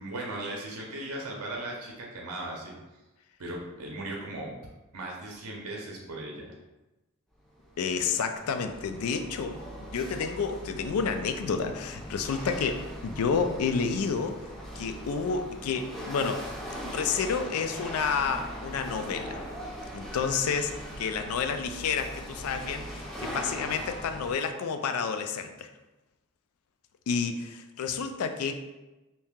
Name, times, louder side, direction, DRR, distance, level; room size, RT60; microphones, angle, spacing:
voice 1, 0.0-2.8 3.4-4.5 4.9-6.5, right 1 dB, 75° right, -1 dB, 0.6 m, -37 dB
Chatter / Hiss / Rattle, 7.4-24.3, equal, ahead, 0.5 m, -40 dB
voice 2, 7.8-9.6 9.9-14.4 14.8-16.5 16.8-19.4 19.9-20.7 21.0-25.7 27.1-28.6, left 5 dB, 75° left, 8 dB, 0.3 m, -30 dB
2.8 x 2.7 x 3.5 m, 1.1 s
head